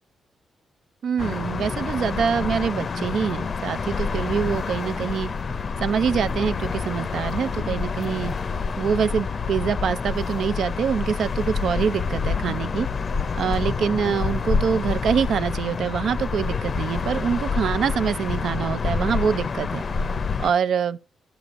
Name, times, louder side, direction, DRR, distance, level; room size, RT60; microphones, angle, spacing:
voice 1, 1.0-5.3 5.8-8.3 8.8-12.9 13.4-19.8 20.4-21.0, right 7 dB, 70° right, 0.4 m, -25 dB
sound 1, 1.2-20.5, left 5 dB, 45° left, 0.5 m, -27 dB
8.8 x 6.8 x 2.5 m
cardioid pair, 85°, 0 cm